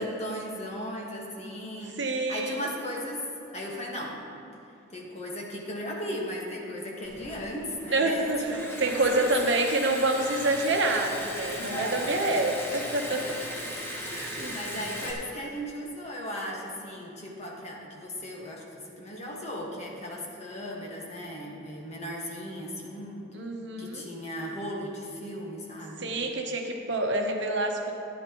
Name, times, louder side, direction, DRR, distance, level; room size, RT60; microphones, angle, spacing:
voice 1, 0.0-2.0 2.3-3.3 3.5-4.2 4.9-9.3 11.4-12.2 13.1-23.3 23.8-26.1, equal, 35° left, -2 dB, 1.6 m, -37 dB
voice 2, 2.0-2.6 7.9-8.4 8.8-13.2 14.1-14.5 23.3-24.1 26.0-27.9, right 2 dB, 65° right, 2 dB, 1.0 m, -27 dB
Liquid, 7.0-15.1, equal, 10° left, 1.2 m, -38 dB
14.0 x 10.5 x 3.1 m, 2.8 s
head